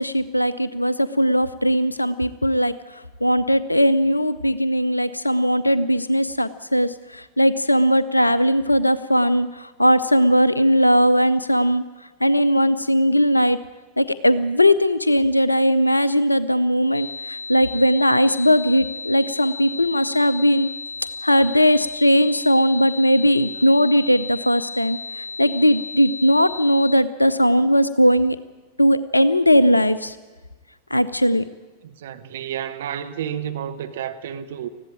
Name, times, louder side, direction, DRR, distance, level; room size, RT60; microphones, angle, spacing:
voice 1, 0.0-2.7 3.2-11.8 12.2-13.6 14.0-20.7 21.2-28.4 28.8-30.1 30.9-31.4, equal, 85° left, 0.7 m, -19 dB
sound 1, 16.9-26.9, left 4 dB, 60° left, 1.4 m, -34 dB
voice 2, 31.8-34.7, right 9 dB, 60° right, 1.1 m, -31 dB
20.0 x 15.0 x 8.8 m
figure-of-eight pair, 90°, 0 cm